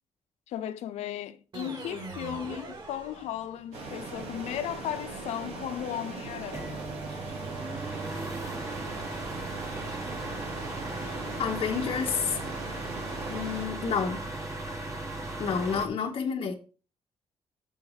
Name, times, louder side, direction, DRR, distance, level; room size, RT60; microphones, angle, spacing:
voice 1, 0.5-6.9, left 11 dB, 90° left, 0.7 m, -36 dB
sound 1, 1.5-3.8, right 3 dB, 45° right, 3.6 m, -42 dB
sound 2, 3.7-13.6, right 4 dB, 80° right, 3.9 m, -40 dB
sound 3, 6.5-15.9, right 2 dB, 30° right, 1.9 m, -37 dB
voice 2, 11.4-12.4 13.3-14.3 15.4-16.5, left 6 dB, 55° left, 1.2 m, -29 dB
7.3 x 4.7 x 6.5 m
cardioid pair, 105°, 11 cm